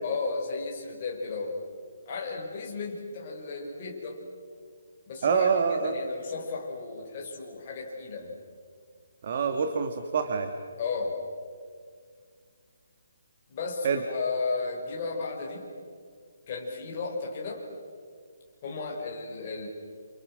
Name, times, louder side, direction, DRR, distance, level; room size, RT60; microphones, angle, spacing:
voice 1, 0.0-1.6 2.1-4.2 5.1-8.3 10.8-11.2 13.5-15.7 16.5-17.6 18.6-19.7, left 4 dB, 25° left, -2 dB, 5.8 m, -34 dB
voice 2, 5.2-5.9 9.2-10.5 13.8-14.0, right 6 dB, 35° right, 7 dB, 1.6 m, -26 dB
29.5 x 29.0 x 6.3 m, 2.1 s
hypercardioid pair, 175°, 0 cm